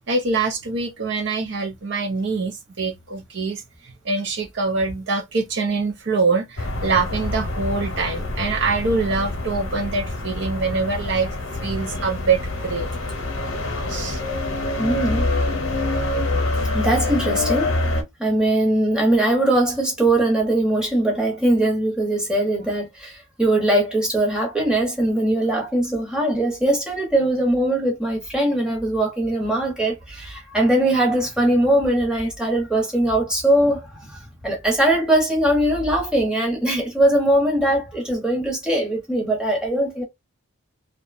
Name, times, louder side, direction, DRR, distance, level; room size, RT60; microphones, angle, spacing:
voice 1, 0.1-3.6 4.1-11.3 11.6-12.9 13.9-14.2, right 4 dB, 55° right, 0.5 m, -24 dB
sound 1, 6.6-18.0, left 2 dB, 70° left, 0.8 m, -26 dB
voice 2, 14.8-15.3 16.7-17.8 18.2-33.9 34.4-40.0, right 1 dB, 5° right, 0.8 m, -21 dB
2.7 x 2.1 x 2.5 m
head